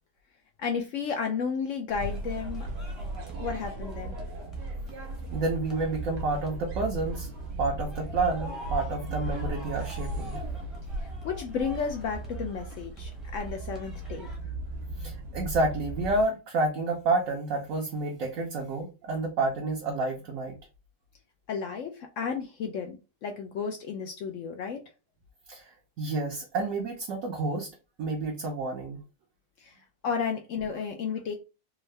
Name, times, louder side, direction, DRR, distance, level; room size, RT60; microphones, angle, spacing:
voice 1, 0.6-2.7 3.4-4.2 11.0-14.3 21.5-24.8 29.6-29.7 30.0-31.3, left 6 dB, 75° left, 4 dB, 0.7 m, -33 dB
sound 1, 1.9-16.2, right 2 dB, 85° right, 1.4 m, -36 dB
sound 2, 2.1-14.4, equal, ahead, 0.6 m, -48 dB
voice 2, 5.3-7.3 7.6-10.4 15.0-20.6 25.5-27.7 28.0-29.0, right 2 dB, 65° right, 1 dB, 0.9 m, -29 dB
3.6 x 2.1 x 3.1 m, 0.30 s
omnidirectional pair, 1.8 m